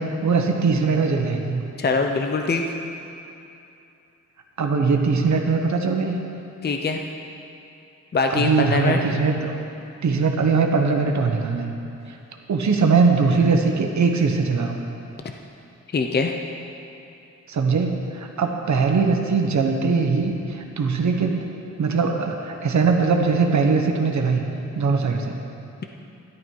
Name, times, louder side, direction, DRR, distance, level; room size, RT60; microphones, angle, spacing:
voice 1, 0.0-1.6 4.6-6.2 8.3-9.3 10.0-11.7 12.5-14.8 17.5-21.4 21.8-24.4 24.7-25.3, right 4 dB, 70° right, 3 dB, 1.3 m, -21 dB
voice 2, 1.8-2.6 6.6-7.0 8.1-9.0 15.9-16.3, left 4 dB, 35° left, 4 dB, 0.6 m, -22 dB
13.5 x 11.5 x 4.7 m, 2.8 s
wide cardioid pair, 140°, 30 cm